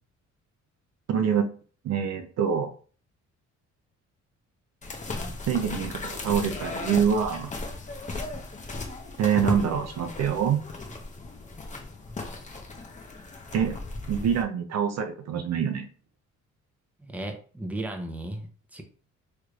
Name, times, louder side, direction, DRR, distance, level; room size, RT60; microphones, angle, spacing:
voice 1, 1.1-1.5 1.8-2.7 5.5-7.5 9.2-10.6 13.5-13.8 14.1-15.9, right 7 dB, 60° right, 7 dB, 0.6 m, -25 dB
sound 1, 4.8-14.4, left 3 dB, 25° left, 0.8 m, -36 dB
voice 2, 17.0-18.8, right 1 dB, 5° right, 3 dB, 0.7 m, -35 dB
3.2 x 3.0 x 2.4 m, 0.41 s
cardioid pair, 90°, 30 cm